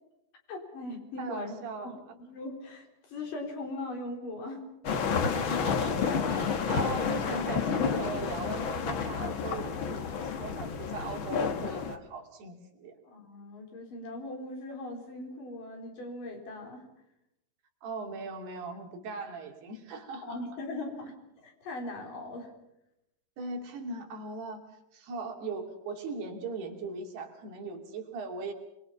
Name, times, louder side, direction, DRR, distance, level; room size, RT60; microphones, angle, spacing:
voice 1, 0.5-1.5 1.8-4.6 13.1-16.9 20.2-22.5, left 2 dB, 55° left, 2 dB, 5.4 m, -40 dB
voice 2, 1.2-2.2 5.2-13.0 17.8-20.4 23.4-24.6 24.9-28.5, right 3 dB, 80° right, 2 dB, 4.7 m, -39 dB
sound 1, 4.8-11.9, left 6 dB, 75° left, 1.1 m, -30 dB
28.0 x 22.0 x 5.8 m, 0.86 s
omnidirectional pair, 4.5 m